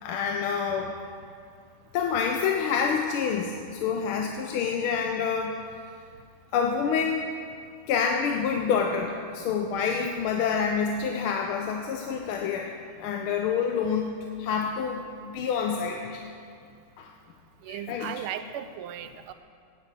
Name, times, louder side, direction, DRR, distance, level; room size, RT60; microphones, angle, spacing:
voice 1, 0.0-0.9 1.9-5.5 6.5-7.3 7.9-12.7 13.0-16.2 17.0-17.1 17.7-18.2, left 6 dB, 80° left, 2 dB, 1.6 m, -27 dB
voice 2, 17.6-19.3, right 9 dB, 90° right, 11 dB, 1.5 m, -36 dB
9.5 x 9.5 x 7.6 m, 2.4 s
omnidirectional pair, 2.4 m